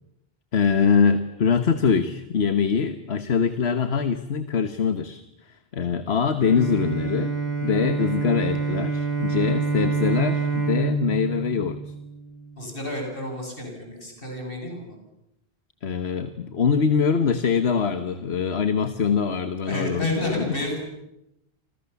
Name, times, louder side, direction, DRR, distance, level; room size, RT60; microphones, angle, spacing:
voice 1, 0.5-7.3 7.6-11.9 15.8-20.8, left 6 dB, 70° left, 10 dB, 1.5 m, -23 dB
Bowed string instrument, 6.4-12.6, right 4 dB, 15° left, 5.8 m, -27 dB
voice 2, 12.6-15.0 19.6-20.8, left 1 dB, 55° left, 2 dB, 8.2 m, -30 dB
29.5 x 26.5 x 7.1 m, 0.88 s
omnidirectional pair, 1.1 m